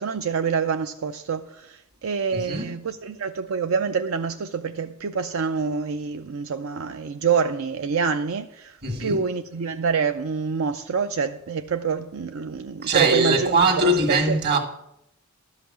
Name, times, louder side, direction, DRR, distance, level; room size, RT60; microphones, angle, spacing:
voice 1, 0.0-14.4, right 5 dB, 85° right, 0.5 m, -26 dB
voice 2, 2.3-2.7 8.8-9.2 12.8-14.6, right 2 dB, 50° right, 1.8 m, -21 dB
12.0 x 5.8 x 8.4 m
head